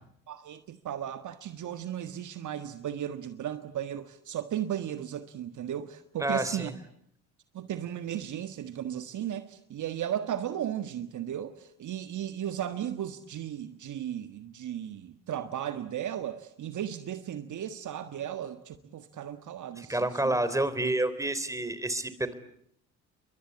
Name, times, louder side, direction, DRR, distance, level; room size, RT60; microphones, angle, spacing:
voice 1, 0.3-6.7 7.5-20.4, right 10 dB, 45° right, 1.6 m, -35 dB
voice 2, 6.2-6.7 19.8-22.3, right 1 dB, 5° right, 3.5 m, -29 dB
29.5 x 23.5 x 8.6 m
figure-of-eight pair, 55°, 42 cm